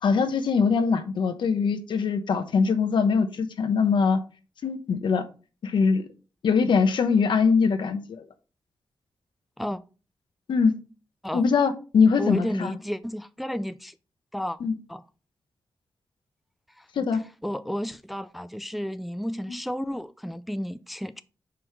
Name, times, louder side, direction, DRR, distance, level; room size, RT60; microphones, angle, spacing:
voice 1, 0.0-4.2 4.6-5.2 5.6-6.1 6.4-8.2 10.5-10.7 11.3-12.7 14.6-14.8 17.0-17.2, left 5 dB, 80° left, 1.0 m, -22 dB
voice 2, 12.2-13.9 14.3-14.6 14.9-15.0 16.8-16.9 17.4-21.2, equal, ahead, 0.3 m, -32 dB
5.7 x 5.0 x 4.5 m
wide cardioid pair, 135°, 8 cm